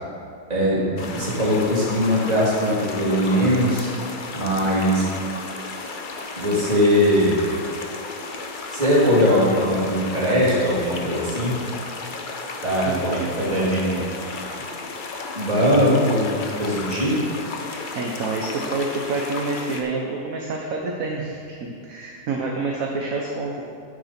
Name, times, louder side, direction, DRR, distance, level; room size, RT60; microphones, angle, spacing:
voice 1, 0.5-3.9 4.3-5.1 6.4-7.4 8.7-11.5 12.6-14.4 15.3-16.3 16.6-17.2, equal, 25° right, -8 dB, 3.0 m, -20 dB
sound 1, 1.0-19.8, left 3 dB, 45° left, 0.7 m, -34 dB
voice 2, 17.7-23.6, right 3 dB, 60° right, -1 dB, 1.3 m, -28 dB
9.7 x 9.2 x 4.3 m, 2.3 s
omnidirectional pair, 1.8 m